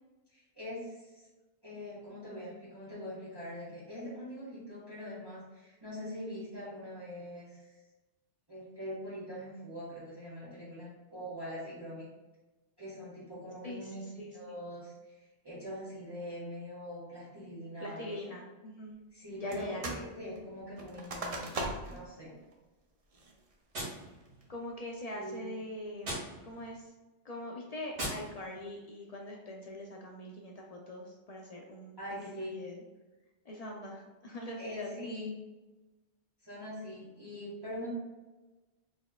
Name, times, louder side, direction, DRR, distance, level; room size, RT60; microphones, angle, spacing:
voice 1, 0.3-1.2 1.6-7.7 8.5-12.1 12.8-18.2 19.1-21.6 21.8-22.3 25.1-25.4 32.0-32.5 34.6-35.3 36.4-37.9, equal, 20° right, -10 dB, 1.3 m, -43 dB
voice 2, 13.6-14.5 17.8-19.0 19.4-19.9 24.5-26.9 27.2-31.9 32.2-32.8 33.4-35.1, left 1 dB, 50° left, -1 dB, 0.4 m, -43 dB
sound 1, 19.5-20.1 20.4-22.1 22.5-22.6 23.1-23.5 24.0-24.4, right 2 dB, 45° right, 0.5 m, -39 dB
Gunshot gunfire, 23.7-24.8 26.0-26.8 27.9-28.8, right 1 dB, 75° right, 1.7 m, -41 dB
4.2 x 3.5 x 2.3 m, 1.2 s
omnidirectional pair, 1.2 m